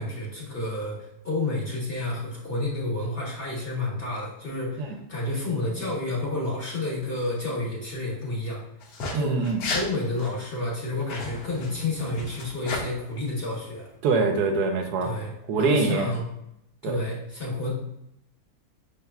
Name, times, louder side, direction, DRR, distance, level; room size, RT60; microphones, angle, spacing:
voice 1, 0.0-8.6 9.1-13.9 15.0-15.3 15.6-16.3 16.8-17.7, left 2 dB, 40° left, -4 dB, 1.1 m, -30 dB
sound 1, 8.8-9.1 9.4-9.9 10.2-10.3 11.0-12.8, left 3 dB, 85° left, 1.3 m, -33 dB
voice 2, 9.1-9.6 14.0-15.1 15.5-16.1 16.8-17.0, right 4 dB, 75° right, 4 dB, 1.1 m, -24 dB
5.7 x 3.3 x 2.3 m, 0.82 s
omnidirectional pair, 1.7 m